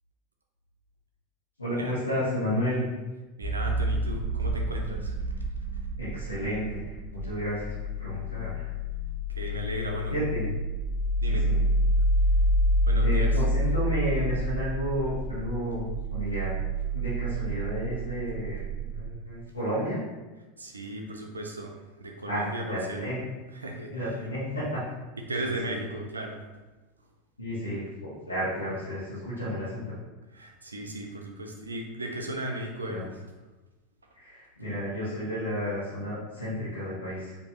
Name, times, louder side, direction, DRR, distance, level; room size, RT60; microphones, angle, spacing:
voice 1, 1.6-2.9 6.0-7.7 8.0-8.7 10.1-10.5 11.3-11.6 13.0-16.6 16.9-18.6 18.9-20.0 22.3-23.2 23.9-24.8 25.4-25.8 27.4-29.9 32.8-33.1 34.1-37.4, equal, 80° left, -10 dB, 1.1 m, -32 dB
sound 1, 3.4-19.1, equal, 35° right, 0.7 m, -28 dB
voice 2, 3.4-5.1 9.4-10.1 11.2-11.4 12.9-13.3 20.6-21.7 22.0-22.6 22.9-23.1 23.6-23.9 25.3-26.4 30.3-33.1, right 1 dB, 80° right, 2 dB, 0.5 m, -35 dB
4.4 x 2.8 x 3.0 m, 1.2 s
figure-of-eight pair, 85°, 0 cm